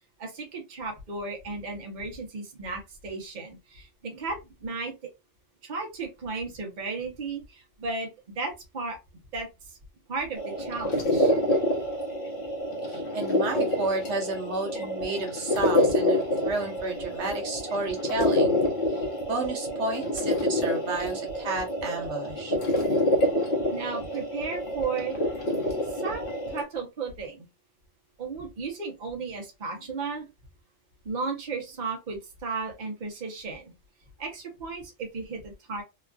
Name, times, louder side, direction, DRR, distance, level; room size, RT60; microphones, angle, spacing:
voice 1, 0.2-4.9 5.6-8.1 8.3-9.0 9.3-9.8 10.1-11.3 23.7-25.2 25.9-27.5 28.2-30.3 31.0-33.7 34.2-35.8, right 4 dB, 40° right, 2 dB, 0.9 m, -35 dB
sound 1, 10.4-26.6, left 1 dB, 50° left, 1.0 m, -27 dB
voice 2, 12.9-19.0 19.3-22.6, right 3 dB, 65° right, 2 dB, 1.0 m, -32 dB
3.0 x 2.3 x 2.4 m, 0.24 s
omnidirectional pair, 1.3 m